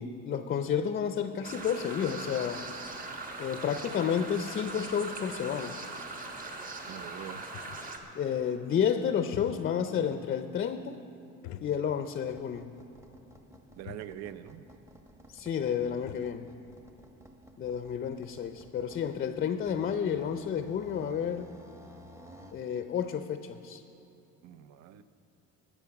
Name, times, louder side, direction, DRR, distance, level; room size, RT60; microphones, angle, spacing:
voice 1, 0.0-2.6 3.4-5.7 8.1-11.0 11.6-12.7 15.3-16.5 17.6-21.5 22.5-23.8, left 8 dB, 35° left, 9 dB, 0.5 m, -31 dB
sound 1, 1.4-8.0, right 3 dB, 30° right, 1.4 m, -40 dB
sound 2, 6.6-8.1 9.1-10.0 10.3-10.4 11.4-12.3 12.6-12.7 13.5-13.6 13.8-14.2 15.5-15.6 15.8-16.4, left 11 dB, 85° left, 0.6 m, -47 dB
voice 2, 6.9-7.4 13.8-14.6 24.4-25.0, right 11 dB, 65° right, 13 dB, 0.7 m, -43 dB
sound 3, 12.3-22.7, equal, 10° right, 0.9 m, -54 dB
20.0 x 7.1 x 5.9 m, 2.9 s
cardioid pair, 130°, 29 cm